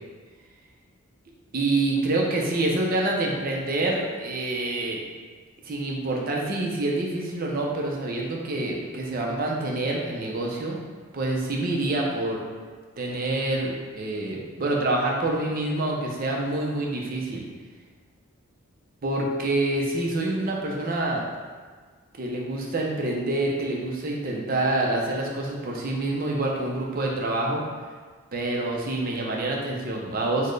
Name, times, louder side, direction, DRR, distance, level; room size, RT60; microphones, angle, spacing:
voice 1, 1.5-5.0 5.6-10.8 11.1-12.4 13.0-17.4 19.0-21.3 22.2-27.6 28.3-30.5, right 2 dB, 40° right, -1 dB, 0.4 m, -27 dB
4.1 x 2.1 x 3.1 m, 1.5 s
head